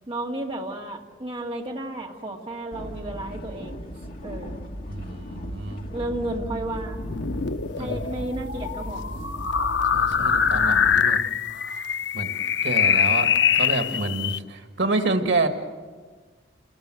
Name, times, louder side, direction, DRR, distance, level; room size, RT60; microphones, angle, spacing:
voice 1, 0.1-3.8 4.2-4.5 5.9-7.0 7.8-9.1, right 1 dB, 30° right, 0 dB, 2.1 m, -32 dB
sound 1, 2.7-11.0, equal, 55° left, 2.4 m, -36 dB
voice 2, 4.9-5.8 7.8-8.0 9.9-11.2 12.1-12.4 12.6-15.5, right 2 dB, 90° right, 6 dB, 2.0 m, -28 dB
sound 2, 7.0-14.4, left 7 dB, 85° left, 0.7 m, -23 dB
29.5 x 19.5 x 7.8 m, 1.5 s
head